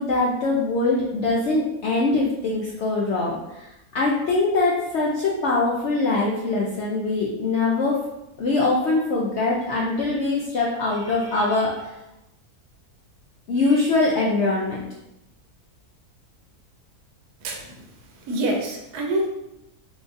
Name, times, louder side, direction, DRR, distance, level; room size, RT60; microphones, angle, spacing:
voice 1, 0.0-3.7 3.9-8.0 8.4-11.9 13.5-14.8, left 3 dB, 75° left, -4 dB, 0.6 m, -23 dB
voice 2, 17.4-17.8 18.3-19.3, right 1 dB, 80° right, 1 dB, 1.1 m, -26 dB
3.7 x 2.5 x 2.4 m, 0.90 s
omnidirectional pair, 1.7 m